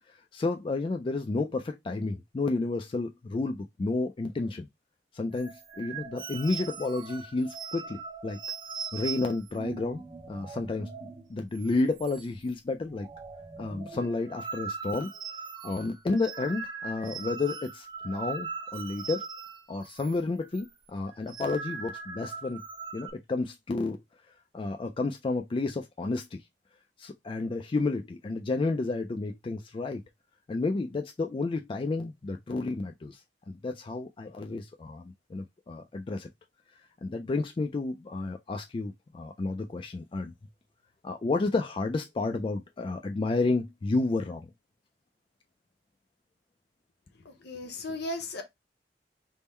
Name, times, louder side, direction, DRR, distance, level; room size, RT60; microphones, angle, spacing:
voice 1, 0.1-4.7 5.1-8.4 8.9-10.9 11.3-13.1 13.6-15.1 15.6-19.3 19.7-22.6 22.9-24.0 24.5-26.4 27.0-30.0 30.5-36.3 37.0-40.3 41.0-44.5, left 3 dB, 30° left, 0.3 m, -31 dB
sound 1, 5.3-11.3 11.6-11.7 12.0-12.5 12.8-20.2 20.4-20.7 21.1-23.1, right 5 dB, 25° right, 0.5 m, -40 dB
voice 2, 47.2-48.4, left 2 dB, 65° left, 0.9 m, -36 dB
3.6 x 2.1 x 4.2 m
head